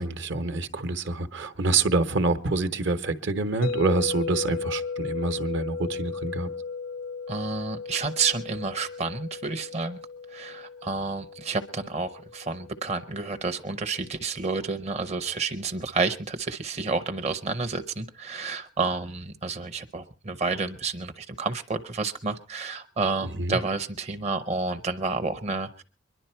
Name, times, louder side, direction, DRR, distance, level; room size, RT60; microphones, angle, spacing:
voice 1, 0.0-6.5 23.2-23.6, right 3 dB, 65° right, 1.0 m, -26 dB
sound 1, 3.6-13.7, left 5 dB, 75° left, 0.7 m, -36 dB
voice 2, 7.3-10.0 10.3-25.8, right 4 dB, 35° right, 0.7 m, -30 dB
23.5 x 11.0 x 4.4 m
head